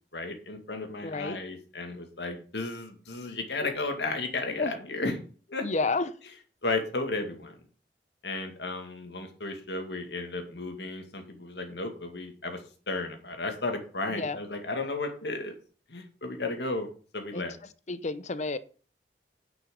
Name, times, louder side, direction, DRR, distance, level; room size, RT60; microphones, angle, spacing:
voice 1, 0.1-5.1 5.5-5.6 6.6-7.5 8.2-12.6 12.9-15.5 15.9-16.9 17.1-17.5, left 3 dB, 75° left, 5 dB, 2.2 m, -34 dB
voice 2, 1.0-1.4 3.5-3.8 4.6-4.7 5.6-6.1 14.1-14.4 17.3-17.4 17.9-18.6, left 3 dB, 40° left, 15 dB, 0.7 m, -30 dB
9.7 x 6.2 x 5.3 m, 0.39 s
head